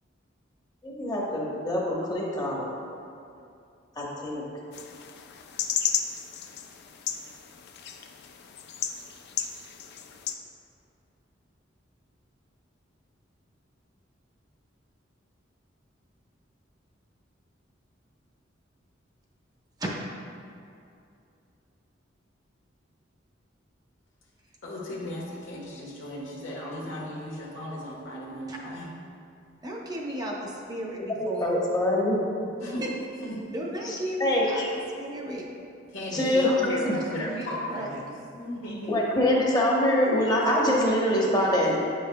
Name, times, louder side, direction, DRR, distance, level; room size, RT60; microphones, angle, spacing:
voice 1, 0.8-2.7 4.0-4.4 31.2-32.2 33.9-34.7 36.1-36.5 36.8-36.9 38.9-41.8, left 1 dB, 20° left, -4 dB, 0.9 m, -24 dB
sound 1, 4.7-10.3, left 8 dB, 60° left, 0.4 m, -34 dB
voice 2, 24.6-28.9 32.6-32.8 33.2-33.4 35.9-39.0, left 1 dB, 80° left, -4 dB, 1.3 m, -36 dB
voice 3, 29.6-31.6 32.8-32.9 33.5-34.6 35.0-35.5 36.2-38.0, right 1 dB, 20° right, -3 dB, 0.7 m, -35 dB
9.1 x 5.4 x 2.2 m, 2.5 s
head